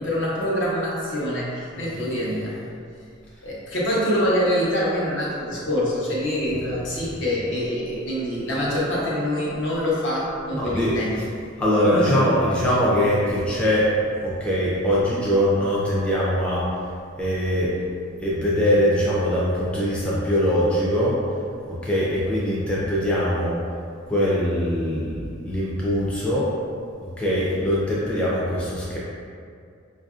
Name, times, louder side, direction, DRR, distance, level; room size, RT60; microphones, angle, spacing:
voice 1, 0.0-2.6 3.4-11.2 11.9-12.2, equal, 65° left, -6 dB, 0.9 m, -25 dB
voice 2, 10.5-11.0 11.6-13.9 14.2-16.7 17.2-17.7 18.2-21.2 21.6-23.6 24.1-26.5 27.0-29.0, equal, 5° left, -8 dB, 0.4 m, -22 dB
4.7 x 2.5 x 2.4 m, 2.3 s
head